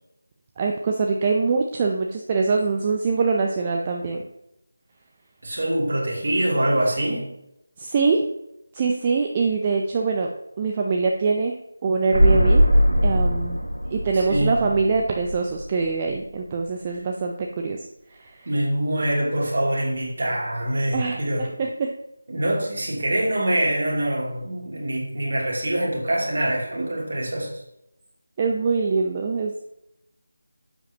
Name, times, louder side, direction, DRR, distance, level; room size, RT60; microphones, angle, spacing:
voice 1, 0.6-4.2 7.8-8.2 8.7-10.3 10.6-11.5 11.8-12.6 13.0-13.6 13.9-17.8 18.1-18.5 20.9-21.9 28.4-29.6, right 4 dB, 20° right, 2 dB, 0.6 m, -23 dB
voice 2, 5.4-7.3 14.1-14.6 18.4-21.5 22.3-27.5, right 1 dB, 45° right, -3 dB, 3.0 m, -24 dB
sound 1, 12.1-15.9 16.1-16.2, equal, 90° right, 1.4 m, -20 dB
11.0 x 7.6 x 3.0 m, 0.83 s
figure-of-eight pair, 160°, 0 cm